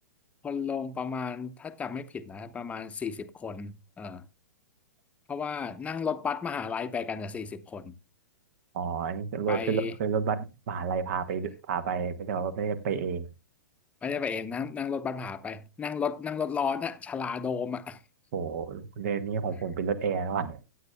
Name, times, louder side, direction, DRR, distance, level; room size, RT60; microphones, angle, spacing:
voice 1, 0.4-4.2 5.3-7.9 9.5-10.0 14.0-18.0, left 6 dB, 15° left, 0.9 m, -33 dB
voice 2, 8.7-13.3 18.3-20.6, right 6 dB, 50° right, 1.4 m, -30 dB
16.0 x 9.5 x 2.3 m
figure-of-eight pair, 110°, 10 cm